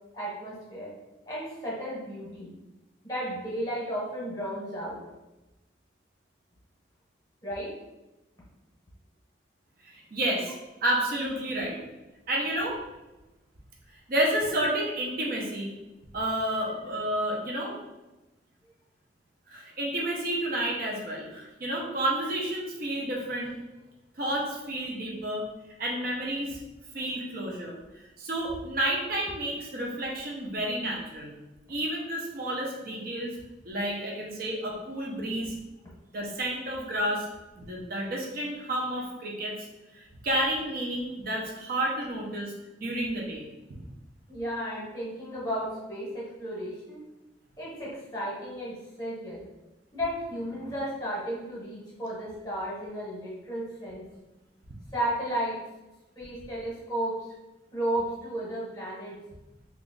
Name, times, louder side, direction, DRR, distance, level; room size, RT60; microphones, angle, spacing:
voice 1, 0.1-0.9 1.3-2.5 3.0-5.0 7.4-7.7 44.3-47.0 47.6-49.4 49.9-54.0 54.9-55.6 56.2-57.2 57.7-59.1, right 1 dB, 20° left, -6 dB, 0.9 m, -33 dB
voice 2, 9.8-10.5 10.8-11.8 12.3-12.8 14.1-15.7 16.1-17.7 19.5-23.6 24.1-25.5 25.8-26.6 26.9-31.3 31.7-33.4 33.6-35.5 36.1-37.3 37.6-39.5 39.9-42.5 42.8-43.4, right 1 dB, 55° right, -2 dB, 0.6 m, -30 dB
3.0 x 2.4 x 3.7 m, 1.0 s
head